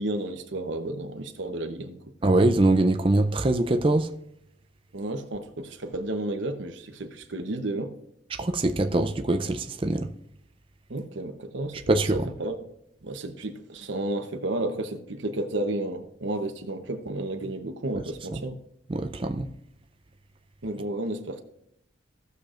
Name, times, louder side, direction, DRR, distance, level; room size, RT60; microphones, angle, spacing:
voice 1, 0.0-2.0 4.9-7.9 10.9-12.6 13.0-18.6 20.6-21.4, right 2 dB, 65° right, 0.9 m, -32 dB
voice 2, 2.2-4.1 8.4-10.1 11.9-12.3 18.0-18.1 18.3-18.4 18.9-19.5, right 2 dB, 25° right, 0.5 m, -23 dB
17.0 x 6.7 x 2.5 m
head